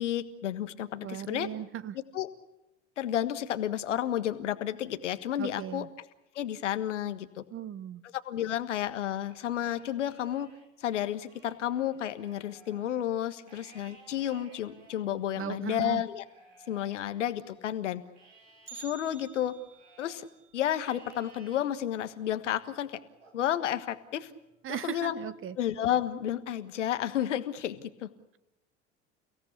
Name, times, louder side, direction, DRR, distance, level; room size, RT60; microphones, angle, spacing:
voice 1, 0.0-1.5 2.1-2.3 3.0-5.9 6.3-7.4 8.1-10.5 10.8-16.2 16.7-18.0 18.7-19.6 20.0-20.3 20.5-23.0 23.3-24.3 24.7-25.2 25.6-28.1, left 11 dB, 75° left, 11 dB, 1.6 m, -31 dB
voice 2, 1.0-2.0 5.4-5.9 7.5-8.0 15.4-16.0 24.6-25.6, right 10 dB, 35° right, 16 dB, 1.1 m, -37 dB
Livestock farm animals working animals, 9.1-10.7 11.1-17.7 18.1-20.3 20.8-21.7 22.2-22.6 23.2-24.3, right 3 dB, 80° right, 4.9 m, -59 dB
Bell, 18.7-22.7 23.0-23.1 23.6-23.7 24.5-24.6 25.4-25.6 26.0-26.1, right 7 dB, 50° right, 6.7 m, -53 dB
30.0 x 17.0 x 8.3 m, 0.94 s
figure-of-eight pair, 70°, 37 cm